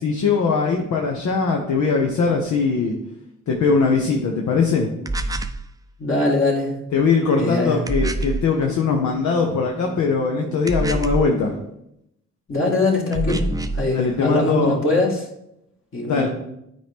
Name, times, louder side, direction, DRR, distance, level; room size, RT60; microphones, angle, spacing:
voice 1, 0.0-2.9 3.5-4.9 6.9-11.6 13.8-14.8 16.1-16.3, left 4 dB, 75° left, 1 dB, 0.9 m, -20 dB
sound 1, 5.1-5.6 7.9-8.5 10.7-11.3 13.1-13.9, right 2 dB, 10° right, 0.5 m, -25 dB
voice 2, 6.0-6.8 7.4-7.8 12.5-13.5 13.7-15.3 15.9-16.3, left 2 dB, 45° left, -2 dB, 1.9 m, -21 dB
8.9 x 4.4 x 3.6 m, 0.79 s
cardioid pair, 60°, 29 cm